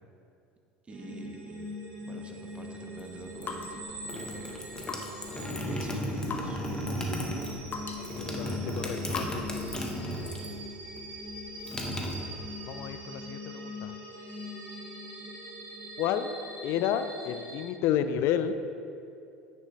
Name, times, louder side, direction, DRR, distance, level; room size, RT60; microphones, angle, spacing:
voice 1, 0.8-1.8 2.0-4.6 5.6-6.6, right 2 dB, 25° right, 3 dB, 1.1 m, -47 dB
sound 1, 0.9-17.7, equal, 55° right, 1.8 m, -42 dB
sound 2, 3.0-10.0, left 4 dB, 35° left, 0.9 m, -43 dB
sound 3, 3.8-10.6 10.9-12.8, equal, 15° left, 1.2 m, -35 dB
voice 2, 8.2-9.5 12.7-13.9 16.0-16.4 16.6-18.5, left 9 dB, 60° left, 10 dB, 0.4 m, -31 dB
9.6 x 6.2 x 3.3 m, 2.7 s
hypercardioid pair, 85°, 5 cm